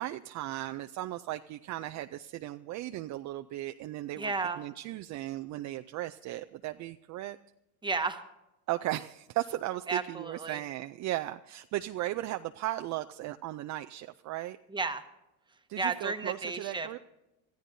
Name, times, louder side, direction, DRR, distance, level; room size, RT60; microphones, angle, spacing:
voice 1, 0.0-7.4 8.7-14.6 15.7-17.0, right 15 dB, 45° right, 8 dB, 0.5 m, -36 dB
voice 2, 4.2-4.6 7.8-8.2 9.9-10.6 14.7-15.0 15.8-17.0, right 4 dB, 10° right, 8 dB, 1.1 m, -33 dB
24.5 x 14.5 x 2.7 m, 0.94 s
supercardioid pair, 110°, 42 cm